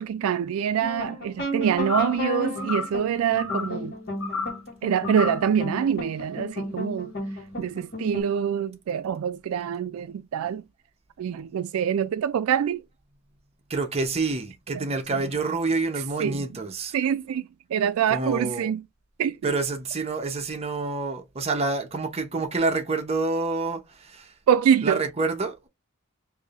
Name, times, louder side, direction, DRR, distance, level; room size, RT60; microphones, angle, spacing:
voice 1, 0.0-4.0 4.8-7.1 7.6-10.6 11.2-12.8 14.7-14.9 16.2-16.4 16.9-18.8 19.2-19.5 24.5-25.0, right 8 dB, 85° right, 0.3 m, -25 dB
sound 1, 0.8-8.2, left 1 dB, 50° left, 1.4 m, -33 dB
sound 2, 1.8-2.2 2.6-3.0 3.4-3.8 4.2-4.6 5.0-5.5, left 4 dB, 75° left, 0.9 m, -31 dB
voice 2, 13.7-16.9 18.1-18.7 19.4-24.3 24.8-25.7, right 3 dB, 30° right, 0.7 m, -28 dB
4.7 x 2.7 x 2.4 m
head